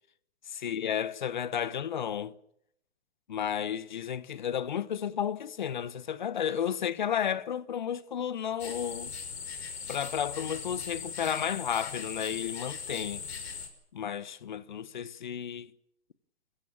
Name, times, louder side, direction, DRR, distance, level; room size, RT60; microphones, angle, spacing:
voice 1, 0.5-2.3 3.3-9.1 9.9-13.4 13.9-15.7, left 9 dB, 45° left, 1.0 m, -32 dB
sound 1, 8.6-13.7, left 6 dB, 70° left, 5.7 m, -39 dB
28.5 x 15.5 x 7.4 m
hypercardioid pair, 180°, 33 cm